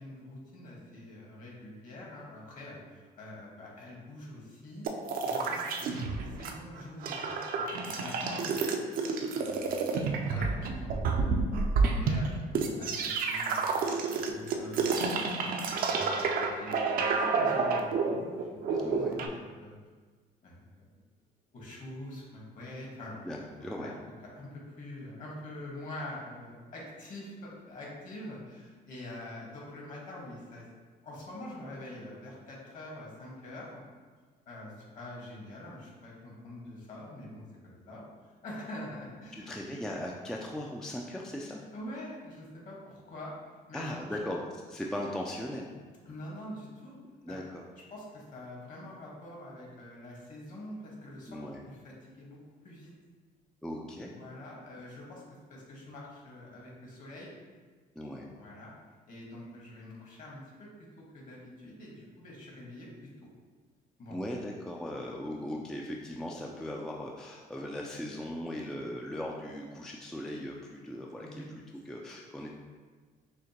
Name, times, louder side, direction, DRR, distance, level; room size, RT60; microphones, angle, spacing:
voice 1, 0.0-4.9 5.2-8.6 9.0-9.1 9.3-13.7 14.1-19.8 20.4-20.8 21.5-23.1 23.6-24.0 24.3-30.7 31.0-33.8 34.5-39.5 41.4-43.3 43.7-44.0 46.0-47.0 47.3-47.4 47.9-52.4 52.6-52.9 54.1-55.2 55.5-57.4 58.3-58.7 59.1-60.7 61.1-63.3 64.0-64.2 71.2-71.5, left 1 dB, 50° left, -3 dB, 1.4 m, -45 dB
sound 1, 4.8-6.5 6.8-19.3, right 4 dB, 60° right, 0.5 m, -29 dB
voice 2, 18.8-19.3 23.2-23.9 39.5-41.6 43.7-45.7 47.2-47.6 51.3-51.6 53.6-54.1 58.0-58.3 64.1-72.5, left 1 dB, 5° left, -1 dB, 0.3 m, -38 dB
6.3 x 2.1 x 2.9 m, 1.5 s
cardioid pair, 110°, 17 cm